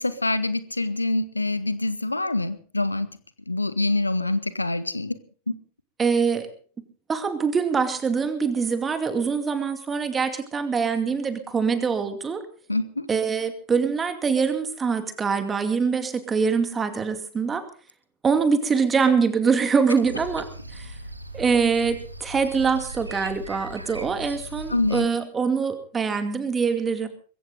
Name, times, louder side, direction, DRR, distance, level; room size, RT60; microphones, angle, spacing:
voice 1, 0.0-3.2 3.5-5.2 12.7-13.1 24.7-25.1, left 2 dB, 85° left, 15 dB, 1.1 m, -25 dB
voice 2, 6.0-6.5 7.1-12.4 13.1-17.6 18.2-20.5 20.7-20.9 21.3-27.1, right 5 dB, 20° right, 9 dB, 2.4 m, -24 dB
sound 1, 20.0-25.0, right 1 dB, 85° right, 1.8 m, -39 dB
21.5 x 16.0 x 3.9 m, 0.42 s
figure-of-eight pair, 90°, 0 cm